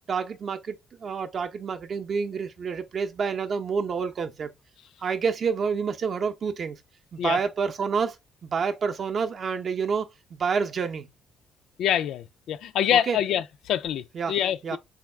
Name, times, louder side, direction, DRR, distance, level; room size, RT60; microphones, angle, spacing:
voice 1, 0.1-4.5 5.0-6.8 7.1-8.2 8.4-11.1 12.9-13.2 14.1-14.4 14.6-14.8, right 5 dB, 50° right, 0.6 m, -28 dB
voice 2, 11.8-14.8, left 10 dB, 80° left, 0.3 m, -26 dB
3.5 x 2.3 x 3.2 m
cardioid pair, 90°, 0 cm